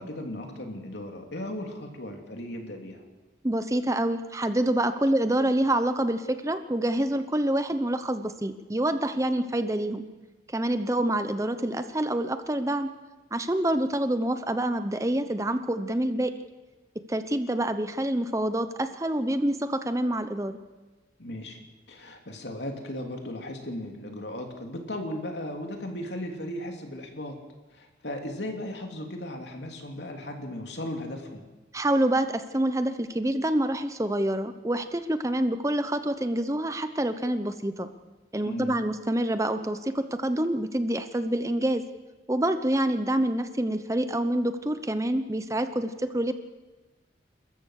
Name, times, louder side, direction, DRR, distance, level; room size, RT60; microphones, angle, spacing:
voice 1, 0.0-3.0 21.2-21.6 21.9-27.3 27.7-31.4 38.4-38.8, left 1 dB, 75° left, 3 dB, 3.0 m, -36 dB
voice 2, 3.4-10.1 10.5-12.9 13.3-16.3 17.1-20.6 31.7-37.9 38.3-41.8 42.3-46.3, right 1 dB, 15° right, 10 dB, 0.8 m, -27 dB
29.5 x 14.0 x 6.5 m, 1.2 s
head